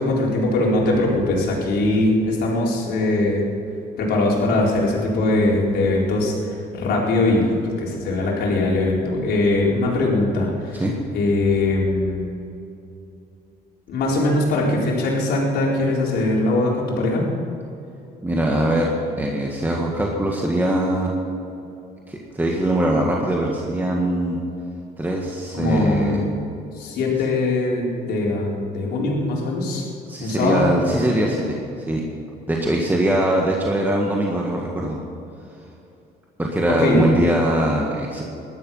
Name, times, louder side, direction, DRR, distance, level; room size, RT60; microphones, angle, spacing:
voice 1, 0.0-3.4 4.0-6.4 6.7-10.8 11.1-12.3 13.9-17.3 25.5-26.2 26.7-29.8 30.2-30.6 36.8-37.0, left 2 dB, 75° left, -3 dB, 4.3 m, -21 dB
voice 2, 18.2-18.9 19.2-21.1 22.1-24.4 25.0-26.3 30.1-31.6 31.9-32.0 32.5-35.0 36.4-38.2, right 1 dB, 10° right, -1 dB, 1.8 m, -22 dB
19.0 x 12.5 x 5.6 m, 2.7 s
cardioid pair, 110°, 17 cm